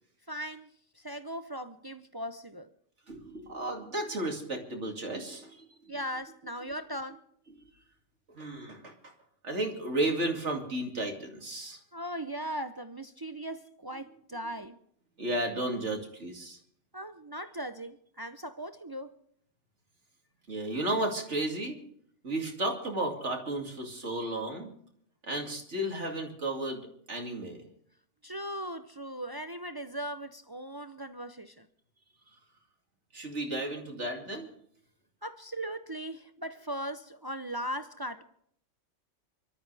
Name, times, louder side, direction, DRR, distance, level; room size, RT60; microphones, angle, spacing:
voice 1, 0.3-2.7 5.9-7.2 11.9-14.8 16.9-19.1 28.2-31.7 35.2-38.2, equal, 35° right, 0.4 m, -38 dB
voice 2, 3.1-5.9 8.3-9.1 9.4-11.8 15.2-16.6 20.5-21.8 22.2-24.7 25.2-27.6 33.1-34.5, right 1 dB, 65° right, 2.8 m, -33 dB
25.0 x 13.0 x 3.4 m
omnidirectional pair, 1.3 m